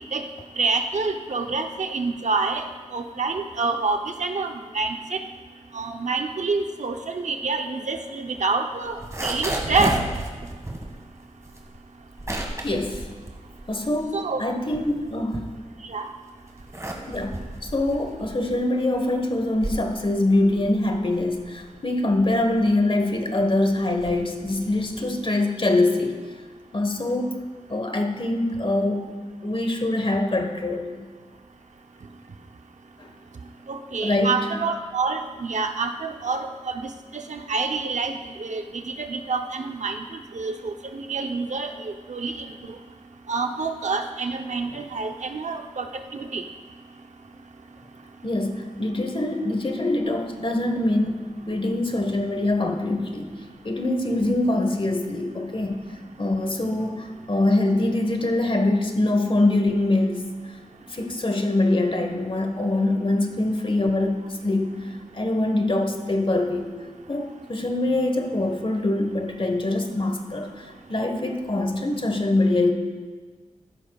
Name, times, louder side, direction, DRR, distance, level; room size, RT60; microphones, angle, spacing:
voice 1, 0.6-5.2 5.7-10.0 14.1-14.4 15.8-16.1 33.7-36.8 37.1-42.4 43.3-46.4, right 4 dB, 65° right, 5 dB, 0.8 m, -27 dB
sound 1, 8.9-14.2 14.5-16.0 16.4-25.2, right 1 dB, 25° right, 1.9 m, -33 dB
voice 2, 12.6-13.1 13.7-15.5 17.1-26.2 26.7-27.3 27.7-29.2 29.4-31.1 33.0-33.1 34.0-34.5 48.2-53.3 53.6-55.9 56.2-60.3 60.9-66.7 67.1-72.7, left 2 dB, 40° left, 5 dB, 1.4 m, -24 dB
15.5 x 12.0 x 2.4 m, 1.4 s
cardioid pair, 50°, 13 cm